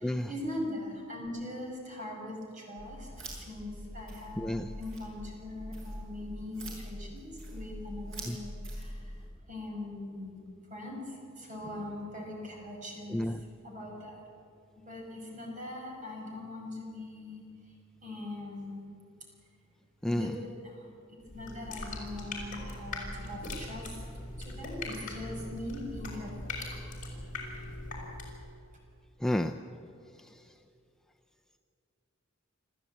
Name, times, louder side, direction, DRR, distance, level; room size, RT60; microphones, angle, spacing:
voice 1, 0.0-3.1 3.3-9.1 9.5-10.4 10.7-13.2 13.6-14.2 14.9-17.4 18.0-18.8 20.0-20.9 21.1-24.0 24.4-26.6, left 1 dB, 40° right, 0 dB, 6.0 m, -41 dB
sound 1, 2.8-9.3, equal, 70° right, 7.1 m, -43 dB
voice 2, 4.4-4.7 8.3-8.4 13.1-13.4 20.0-20.3 29.2-29.5, left 1 dB, 5° left, 4 dB, 0.5 m, -30 dB
sound 2, 21.2-28.5, left 2 dB, 40° left, 5.6 m, -40 dB
27.5 x 14.0 x 8.6 m, 2.6 s
head